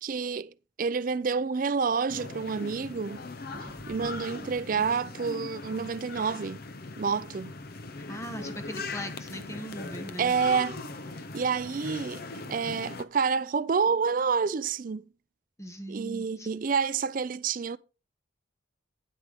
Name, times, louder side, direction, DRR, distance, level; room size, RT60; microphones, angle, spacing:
voice 1, 0.0-3.2 3.9-6.6 7.0-7.5 10.2-10.8 11.3-12.2 12.5-15.0 15.9-17.8, right 5 dB, 45° right, 0.4 m, -28 dB
sound 1, 2.1-13.0, left 3 dB, 50° left, 0.6 m, -40 dB
sound 2, 3.5-4.6, equal, 10° right, 0.9 m, -47 dB
voice 2, 8.1-10.3 15.6-16.5, equal, 15° left, 1.1 m, -39 dB
9.6 x 8.1 x 3.5 m
head